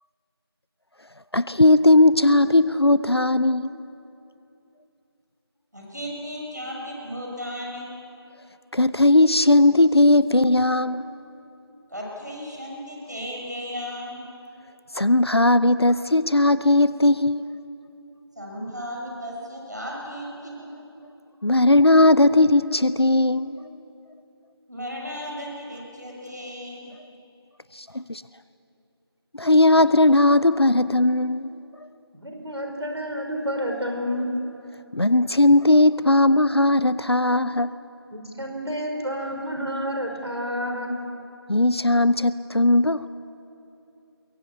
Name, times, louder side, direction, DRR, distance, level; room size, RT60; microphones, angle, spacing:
voice 1, 1.3-3.7 8.7-11.0 14.9-17.4 21.4-23.6 27.7-28.2 29.4-31.5 34.9-37.7 41.5-43.1, left 2 dB, 70° left, 14 dB, 0.7 m, -18 dB
voice 2, 5.7-7.9 11.9-14.3 18.4-20.7 24.7-26.9, equal, 45° right, -2 dB, 5.8 m, -35 dB
voice 3, 32.1-34.3 38.1-40.9, equal, 85° right, 3 dB, 5.1 m, -29 dB
23.5 x 22.5 x 8.4 m, 2.8 s
figure-of-eight pair, 180°, 14 cm